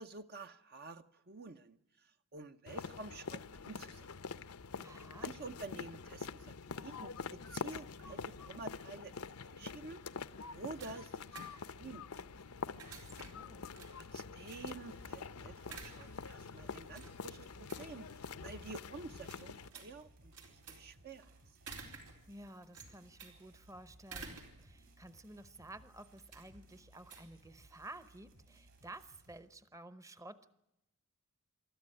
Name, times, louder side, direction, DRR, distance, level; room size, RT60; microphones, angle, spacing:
voice 1, 0.0-4.1 4.9-10.0 10.5-11.2 11.8-12.3 13.9-20.3 20.7-21.3, right 3 dB, 45° right, 8 dB, 0.8 m, -50 dB
sound 1, 2.7-19.7, left 5 dB, 75° left, 0.8 m, -46 dB
voice 2, 4.8-5.3 12.9-13.7 22.3-30.5, right 2 dB, 15° right, 13 dB, 0.9 m, -53 dB
sound 2, 10.1-28.1, right 4 dB, 90° right, 4.4 m, -55 dB
sound 3, 14.6-29.4, right 1 dB, 65° right, 7.7 m, -63 dB
27.5 x 13.5 x 9.9 m, 0.84 s
head